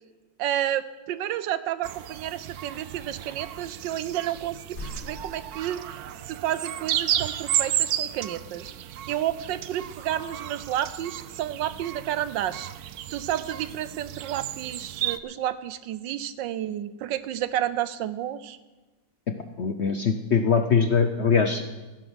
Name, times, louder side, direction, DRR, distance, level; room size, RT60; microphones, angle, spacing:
voice 1, 0.4-8.7 9.1-12.7 13.1-18.6, right 11 dB, 85° right, 14 dB, 1.4 m, -31 dB
sound 1, 1.8-15.2, right 11 dB, 65° right, 1.0 m, -33 dB
sound 2, 4.3-6.0 6.9-7.0, equal, 35° left, 3.8 m, -41 dB
voice 2, 19.6-21.6, left 5 dB, 55° left, 7 dB, 0.7 m, -22 dB
15.0 x 10.5 x 6.3 m, 1.2 s
omnidirectional pair, 1.9 m